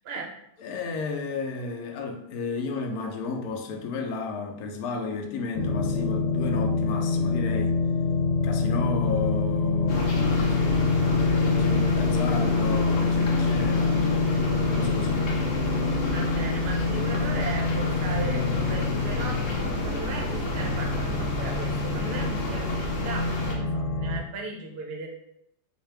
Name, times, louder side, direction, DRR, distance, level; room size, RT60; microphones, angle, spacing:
voice 1, 0.6-7.8 8.4-10.7 11.0-14.0 14.8-15.3, left 4 dB, 70° left, 4 dB, 1.0 m, -33 dB
sound 1, 5.5-24.2, left 4 dB, 90° left, 1.3 m, -26 dB
sound 2, 9.9-23.5, left 1 dB, 50° left, 0.7 m, -31 dB
voice 2, 16.0-25.1, right 4 dB, 55° right, 1 dB, 0.7 m, -37 dB
3.9 x 2.6 x 3.2 m, 0.75 s
omnidirectional pair, 1.8 m